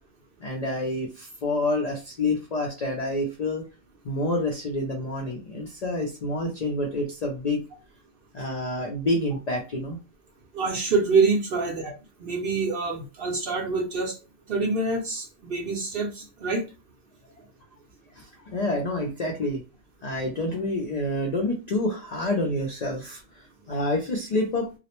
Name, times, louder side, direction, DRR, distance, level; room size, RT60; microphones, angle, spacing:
voice 1, 0.4-3.6 4.0-7.6 8.3-10.0 18.1-19.6 20.0-24.7, left 1 dB, 70° left, 1 dB, 0.4 m, -28 dB
voice 2, 10.5-11.9 12.2-14.1 14.5-16.6, right 4 dB, 60° right, 1 dB, 0.7 m, -26 dB
2.3 x 2.0 x 2.8 m, 0.30 s
omnidirectional pair, 1.3 m